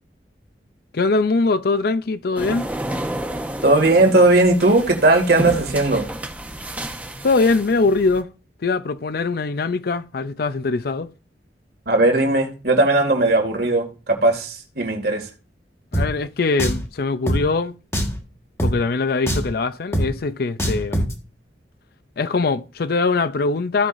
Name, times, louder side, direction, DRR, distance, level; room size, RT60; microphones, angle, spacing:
voice 1, 0.9-2.7 7.2-8.3 8.6-11.1 15.9-17.7 18.6-21.1 22.2-23.9, left 3 dB, 60° left, 0.5 m, -22 dB
sound 1, 2.4-8.2, right 1 dB, 10° right, 0.8 m, -31 dB
voice 2, 3.6-6.1 11.9-15.2, right 2 dB, 60° right, 2.2 m, -17 dB
Drum, 15.9-16.1 16.6-16.9 17.3-17.4 17.9-18.2 18.6-18.7 19.3-19.5 19.9-20.1 20.6-21.1, equal, 15° left, 1.5 m, -22 dB
16.0 x 5.6 x 2.6 m
head